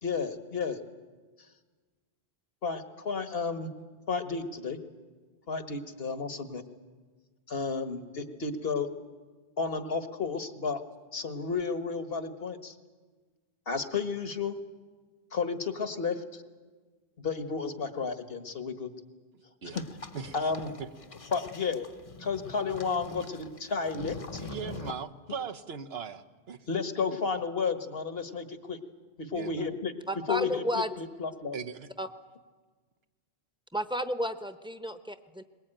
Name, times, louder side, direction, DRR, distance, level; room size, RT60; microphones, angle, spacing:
voice 1, 0.0-0.8 2.6-3.7 4.1-4.8 5.5-6.6 7.5-8.9 9.6-10.8 11.1-12.7 13.7-14.6 15.3-16.4 17.2-18.9 19.7-19.8 20.3-20.7 21.3-21.9 22.2-24.4 26.7-28.8 29.2-29.9 30.3-30.6 31.0-31.5, left 5 dB, 70° left, 9 dB, 1.6 m, -32 dB
sound 1, 19.7-24.9, left 4 dB, 35° left, 0.9 m, -43 dB
voice 2, 24.4-26.6 29.3-29.8 31.5-31.9, right 6 dB, 80° right, 7 dB, 1.2 m, -39 dB
voice 3, 30.1-30.9 32.0-32.1 33.7-35.4, equal, 5° right, 9 dB, 0.8 m, -32 dB
22.0 x 20.5 x 9.0 m, 1.4 s
omnidirectional pair, 1.0 m